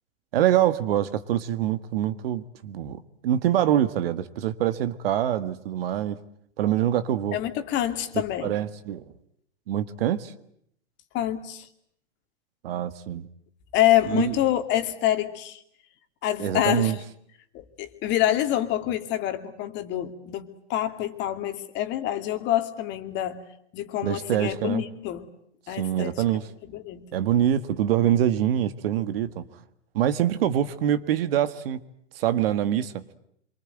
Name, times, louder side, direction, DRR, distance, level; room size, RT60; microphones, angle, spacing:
voice 1, 0.3-6.2 6.6-7.4 8.4-9.0 9.7-10.3 12.6-13.2 14.2-14.4 16.4-17.0 24.0-24.8 25.8-26.5 27.1-29.4 29.9-31.8 32.2-33.0, right 11 dB, 55° right, 12 dB, 1.7 m, -25 dB
voice 2, 7.3-8.5 11.1-11.7 13.7-15.6 16.2-17.0 17.5-23.4 23.7-25.3 25.7-26.2 26.6-27.0, left 12 dB, 30° left, 7 dB, 2.5 m, -26 dB
27.0 x 24.0 x 9.2 m, 0.72 s
hypercardioid pair, 130°, 34 cm